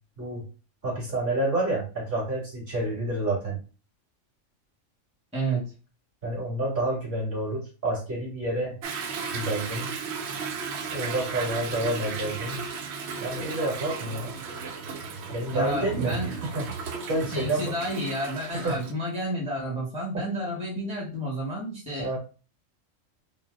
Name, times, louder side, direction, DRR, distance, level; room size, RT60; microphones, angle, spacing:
voice 1, 0.8-3.6 6.2-8.8 9.3-9.9 10.9-12.6 13.2-14.3 15.3-16.7 17.1-17.7 18.5-18.8 20.1-20.3 22.0-22.2, right 1 dB, 45° right, -5 dB, 2.4 m, -29 dB
voice 2, 5.3-5.7 15.5-16.3 17.3-22.1, right 1 dB, 5° right, -4 dB, 1.0 m, -30 dB
Toilet flush / Drip / Trickle dribble, 8.8-18.9, right 5 dB, 65° right, 0.8 m, -35 dB
3.8 x 2.0 x 3.6 m, 0.34 s
omnidirectional pair, 1.3 m